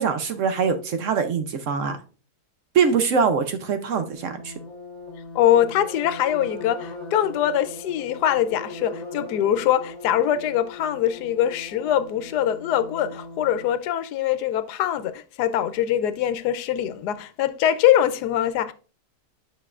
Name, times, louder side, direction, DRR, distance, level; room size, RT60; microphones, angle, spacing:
voice 1, 0.0-2.0 2.7-4.5, right 6 dB, 65° right, 0.9 m, -23 dB
sound 1, 4.1-13.7, left 2 dB, 25° left, 1.9 m, -39 dB
voice 2, 5.3-18.7, left 11 dB, 85° left, 1.1 m, -23 dB
8.8 x 5.4 x 2.4 m
omnidirectional pair, 1.7 m